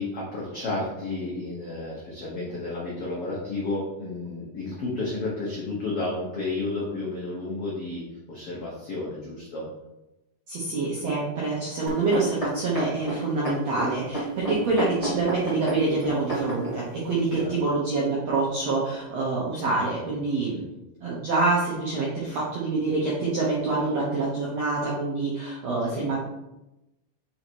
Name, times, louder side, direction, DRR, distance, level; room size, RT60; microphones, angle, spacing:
voice 1, 0.0-9.7 17.3-17.6 25.9-26.1, left 2 dB, 85° left, -5 dB, 1.2 m, -32 dB
voice 2, 10.5-20.6 21.0-26.2, right 3 dB, 75° right, -5 dB, 1.5 m, -26 dB
sound 1, 11.9-16.8 17.4-17.5, right 1 dB, 60° left, 0.3 m, -30 dB
5.7 x 3.9 x 4.6 m, 0.95 s
omnidirectional pair, 4.4 m